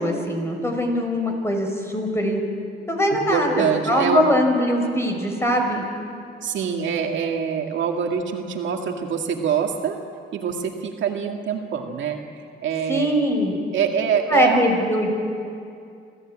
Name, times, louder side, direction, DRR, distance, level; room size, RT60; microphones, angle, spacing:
voice 1, 0.0-2.4 2.9-5.8 12.9-13.6 14.3-15.1, equal, 15° left, 3 dB, 5.1 m, -21 dB
voice 2, 3.3-4.2 6.4-10.0 10.3-12.2 12.6-13.1 13.7-14.7, right 7 dB, 70° right, 2 dB, 2.2 m, -24 dB
26.5 x 15.5 x 8.8 m, 2.4 s
cardioid pair, 90°, 20 cm